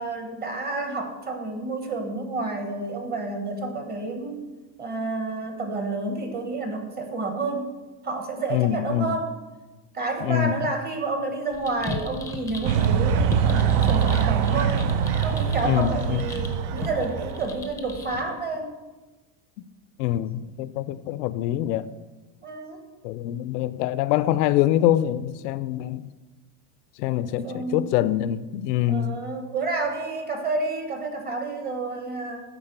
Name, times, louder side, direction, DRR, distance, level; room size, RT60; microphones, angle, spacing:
voice 1, 0.0-4.5 4.8-7.7 8.0-9.3 9.9-14.9 15.2-18.8 22.4-22.8 27.3-28.1 28.9-32.4, right 3 dB, 20° right, 1.1 m, -30 dB
voice 2, 8.5-9.2 10.2-10.7 15.6-16.2 20.0-21.9 23.0-26.1 27.0-29.2, left 12 dB, 85° left, 0.6 m, -24 dB
sound 1, 11.5-18.2, left 3 dB, 5° left, 0.5 m, -35 dB
sound 2, 12.6-17.5, right 8 dB, 60° right, 0.6 m, -23 dB
9.9 x 4.0 x 6.7 m
supercardioid pair, 150°, 48 cm